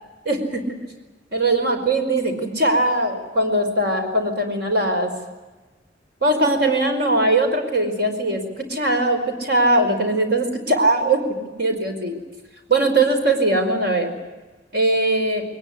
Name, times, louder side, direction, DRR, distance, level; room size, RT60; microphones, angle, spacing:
voice 1, 0.2-0.8 1.3-5.1 6.2-11.2 11.6-12.2 12.7-14.1 14.7-15.4, right 2 dB, 60° right, 5 dB, 4.9 m, -20 dB
21.5 x 20.0 x 9.9 m, 1.2 s
head